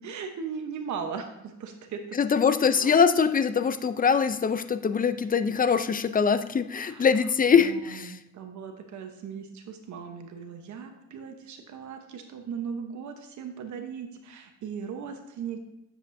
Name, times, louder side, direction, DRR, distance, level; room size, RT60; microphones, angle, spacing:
voice 1, 0.0-2.2 2.6-3.0 6.8-7.1 7.6-15.6, right 6 dB, 70° right, 5 dB, 1.1 m, -38 dB
voice 2, 2.2-8.2, left 6 dB, 30° left, 12 dB, 0.5 m, -23 dB
10.0 x 7.6 x 2.7 m, 0.93 s
cardioid pair, 90°, 30 cm